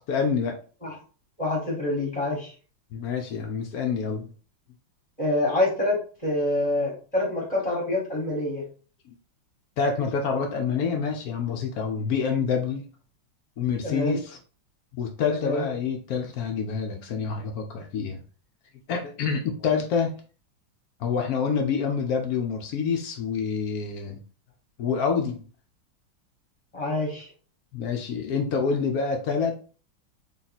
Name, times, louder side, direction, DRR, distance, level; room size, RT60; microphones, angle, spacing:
voice 1, 0.1-0.6 2.9-4.3 9.8-12.8 13.6-14.4 14.9-18.2 18.9-20.1 21.0-24.2 24.8-25.4 27.7-29.6, left 5 dB, 75° left, 3 dB, 0.8 m, -27 dB
voice 2, 1.4-2.5 5.2-8.6 13.8-14.2 15.4-15.7 26.7-27.3, left 1 dB, 25° left, -4 dB, 0.8 m, -26 dB
3.7 x 2.4 x 4.0 m, 0.39 s
omnidirectional pair, 2.2 m